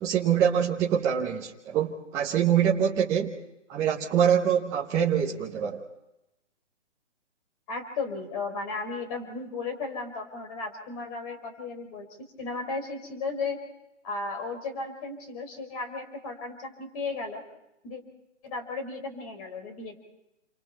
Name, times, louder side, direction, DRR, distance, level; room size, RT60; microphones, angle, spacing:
voice 1, 0.0-3.4 3.7-5.8, right 8 dB, 10° right, -3 dB, 0.7 m, -25 dB
voice 2, 7.7-12.1 12.4-13.6 14.0-17.4 17.8-18.0 18.4-20.0, left 3 dB, 30° left, 6 dB, 4.5 m, -35 dB
29.0 x 25.5 x 4.5 m, 0.90 s
hypercardioid pair, 155°, 36 cm